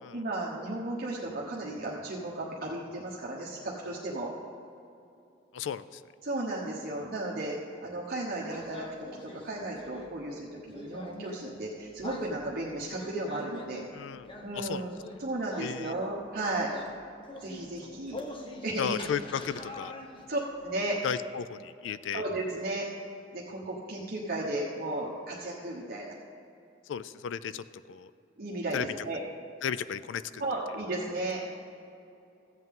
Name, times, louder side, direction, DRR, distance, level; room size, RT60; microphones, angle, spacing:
voice 1, 0.1-4.3 6.2-7.6 7.8-13.8 14.4-16.7 17.4-18.2 18.6-19.0 20.3-21.0 22.1-22.9 23.3-26.1 28.4-29.2 30.4-31.4, right 2 dB, 50° right, -4 dB, 1.1 m, -34 dB
voice 2, 5.5-6.0 13.9-14.8 15.6-15.9 17.9-18.1 18.8-19.9 21.0-22.2 26.9-28.1 28.7-28.9 29.6-30.2, left 8 dB, 85° left, 15 dB, 0.3 m, -34 dB
sound 1, 8.5-10.1 10.7-11.6 12.0-12.3 12.8-13.9 14.3-14.5 14.9-15.2 15.5-16.1 16.5-16.9 17.2-17.7 18.1-18.7 18.9-20.3, left 2 dB, 30° left, 1.0 m, -44 dB
15.0 x 8.1 x 3.7 m, 2.7 s
head